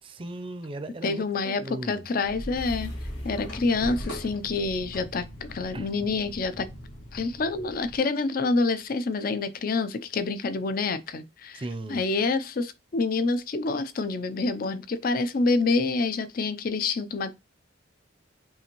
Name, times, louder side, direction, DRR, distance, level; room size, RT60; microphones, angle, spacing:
voice 1, 0.0-2.1 5.7-5.9 11.5-12.0, right 2 dB, 30° right, 0.5 m, -37 dB
voice 2, 1.0-2.9 3.2-6.7 7.1-11.6 11.9-17.4, left 3 dB, 50° left, 0.5 m, -27 dB
sound 1, 2.2-8.0, equal, 75° left, 1.5 m, -40 dB
sound 2, 2.6-7.1, equal, 30° left, 0.8 m, -43 dB
5.5 x 2.5 x 3.0 m
head